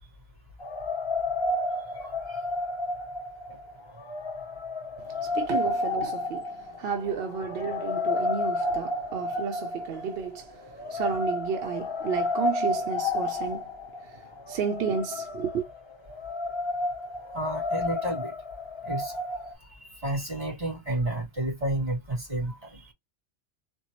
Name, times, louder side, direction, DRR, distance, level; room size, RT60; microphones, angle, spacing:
sound 1, 0.6-19.5, left 2 dB, 40° left, 0.4 m, -31 dB
voice 1, 5.1-13.7 14.0-15.6, right 7 dB, 65° right, 0.7 m, -32 dB
voice 2, 17.3-18.3 18.8-19.4 20.0-22.8, right 1 dB, 35° right, 2.6 m, -31 dB
4.3 x 2.1 x 2.8 m
omnidirectional pair, 1.2 m